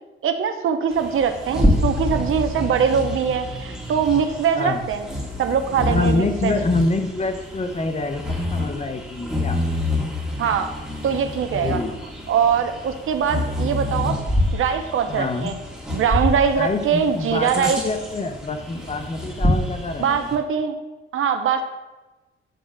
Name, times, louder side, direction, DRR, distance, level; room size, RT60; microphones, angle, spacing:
voice 1, 0.2-5.0 5.4-6.5 10.4-10.7 11.0-11.8 12.3-14.2 14.5-15.6 15.9-17.8 20.0-20.8 21.1-21.6, right 7 dB, 80° right, 7 dB, 0.9 m, -22 dB
Bird vocalization bird call bird song, 0.9-20.4, left 1 dB, ahead, 2.2 m, -27 dB
voice 2, 4.6-4.9 5.9-9.6 11.5-12.0 15.1-15.6 16.5-20.4, left 3 dB, 30° left, 7 dB, 0.9 m, -26 dB
7.7 x 3.7 x 6.3 m, 1.1 s
cardioid pair, 100°, 21 cm